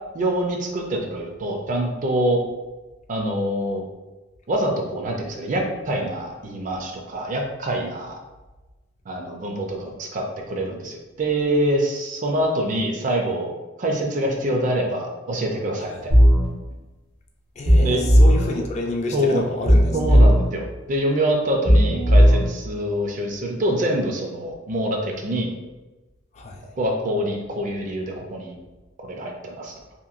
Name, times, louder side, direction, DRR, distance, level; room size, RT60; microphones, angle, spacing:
voice 1, 0.1-2.4 3.1-3.8 4.5-8.2 9.1-13.5 13.8-16.1 17.8-18.0 19.1-19.5 19.9-25.5 26.8-28.6 29.0-29.7, right 1 dB, 40° right, 1 dB, 0.4 m, -25 dB
sound 1, 16.1-16.5 17.7-18.5 19.7-20.5 21.7-22.5, equal, 75° right, 0.8 m, -14 dB
voice 2, 17.6-19.9 26.4-26.6, left 2 dB, 35° left, 2 dB, 0.3 m, -29 dB
2.9 x 2.5 x 2.4 m, 1.1 s
head